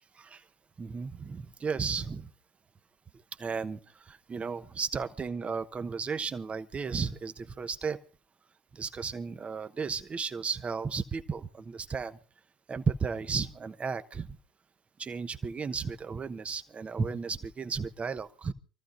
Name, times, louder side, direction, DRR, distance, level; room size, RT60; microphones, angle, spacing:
voice 1, 0.8-2.3 3.4-8.0 8.7-12.2 12.7-14.4 15.0-18.5, right 5 dB, 25° right, 10 dB, 1.0 m, -34 dB
27.5 x 14.0 x 2.6 m, 0.37 s
hypercardioid pair, 75°, 5 cm